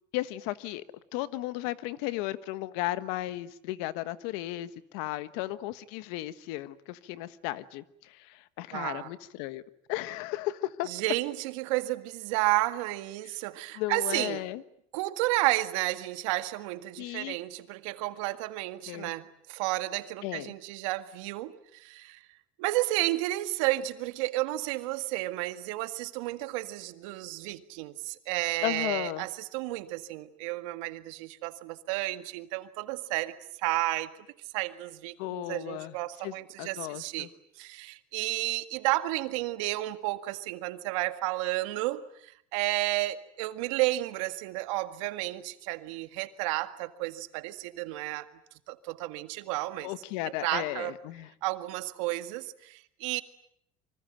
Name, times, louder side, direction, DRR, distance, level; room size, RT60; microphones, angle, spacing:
voice 1, 0.1-0.8 1.1-9.6 9.9-10.9 13.2-13.3 13.7-14.6 17.0-17.4 18.9-19.1 20.2-20.5 28.6-29.2 35.2-35.9 36.2-37.3 49.8-51.3, left 16 dB, 80° left, 14 dB, 1.4 m, -35 dB
voice 2, 8.7-9.1 10.9-14.4 14.9-22.2 22.6-34.1 34.5-37.3 37.6-48.3 48.7-49.9 50.4-50.9 51.4-53.2, right 18 dB, 85° right, 10 dB, 1.9 m, -32 dB
25.0 x 25.0 x 9.0 m, 0.71 s
supercardioid pair, 100°, 16 cm